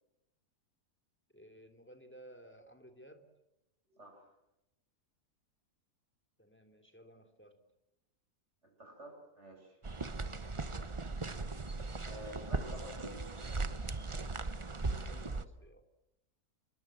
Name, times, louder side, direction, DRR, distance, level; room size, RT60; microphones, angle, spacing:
voice 1, 1.3-3.3 6.4-7.6 14.9-15.9, right 1 dB, 5° left, 6 dB, 3.0 m, -56 dB
voice 2, 3.9-4.3 8.6-9.9 12.0-13.2, equal, 45° right, 2 dB, 7.9 m, -50 dB
sound 1, 9.8-15.4, right 3 dB, 25° right, 0.9 m, -38 dB
29.0 x 23.0 x 7.7 m, 0.91 s
omnidirectional pair, 1.6 m